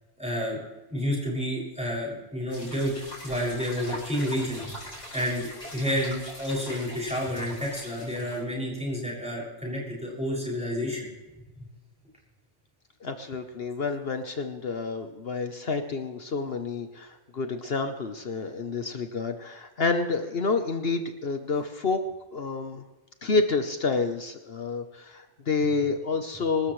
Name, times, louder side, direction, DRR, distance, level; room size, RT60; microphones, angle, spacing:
voice 1, 0.2-0.6 0.9-2.9 3.2-4.6 5.1-11.1, equal, 5° right, -5 dB, 6.6 m, -30 dB
sound 1, 2.5-8.4, left 1 dB, 85° left, 6.1 m, -42 dB
voice 2, 13.0-22.0 22.3-22.8 23.2-26.7, left 4 dB, 55° left, 7 dB, 1.2 m, -29 dB
25.5 x 13.0 x 3.2 m, 1.1 s
omnidirectional pair, 1.2 m